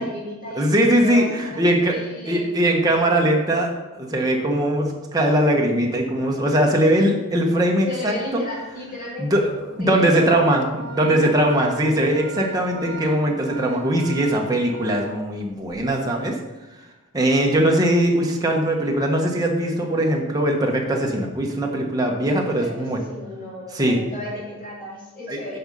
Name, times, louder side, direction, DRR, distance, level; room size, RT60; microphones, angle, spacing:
voice 1, 0.0-2.5 7.9-9.4 9.8-10.3 11.0-11.3 22.2-25.6, left 1 dB, 40° left, -6 dB, 3.2 m, -34 dB
voice 2, 0.6-2.0 2.3-8.4 9.2-9.5 9.8-16.3 17.1-23.0 23.7-24.0 25.3-25.6, right 1 dB, 15° right, 0 dB, 1.1 m, -20 dB
Organ, 8.0-8.2 8.6-8.7 9.6-15.9, right 2 dB, 55° right, 0.9 m, -37 dB
7.9 x 5.3 x 5.3 m, 1.1 s
head